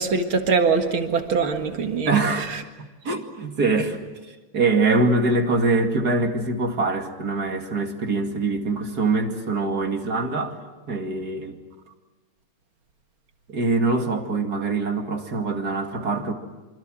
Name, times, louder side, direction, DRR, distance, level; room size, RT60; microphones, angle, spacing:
voice 1, 0.0-2.1, right 4 dB, 80° right, 5 dB, 2.7 m, -22 dB
voice 2, 2.1-2.6 3.0-10.6 10.9-11.6 13.5-16.3, right 3 dB, 50° right, 4 dB, 2.8 m, -24 dB
26.0 x 26.0 x 7.7 m, 1.2 s
omnidirectional pair, 2.2 m